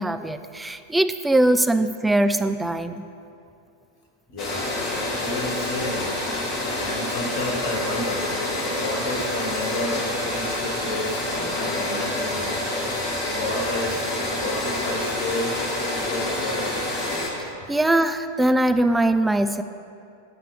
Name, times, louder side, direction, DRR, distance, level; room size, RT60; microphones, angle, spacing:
voice 1, 0.0-3.0 17.7-19.6, right 1 dB, 5° right, 9 dB, 0.3 m, -21 dB
voice 2, 4.3-4.8 5.2-6.1 6.8-8.3 8.7-12.5 13.0-15.6 16.0-16.9, left 1 dB, 50° left, 0 dB, 1.3 m, -31 dB
sound 1, 4.4-17.3, left 1 dB, 25° left, 1.4 m, -27 dB
7.9 x 5.8 x 4.8 m, 2.5 s
figure-of-eight pair, 90°, 0 cm